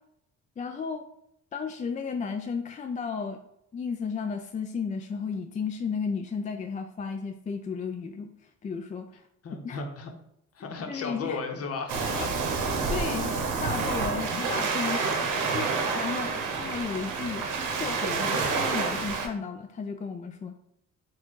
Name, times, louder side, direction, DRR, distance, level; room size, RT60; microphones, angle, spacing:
voice 1, 0.6-1.1 1.5-3.4 3.7-8.3 8.6-9.3 9.6-9.8 10.9-11.4 12.9-13.3 13.6-15.0 15.3-16.3 16.6-20.7, left 5 dB, 25° left, 5 dB, 0.3 m, -34 dB
voice 2, 9.4-10.1 10.5-12.3 13.0-13.2, left 4 dB, 50° left, 4 dB, 0.9 m, -35 dB
Waves surf, 11.9-19.3, right 4 dB, 85° right, 0.8 m, -28 dB
4.2 x 2.4 x 4.5 m, 0.77 s
cardioid pair, 90°, 30 cm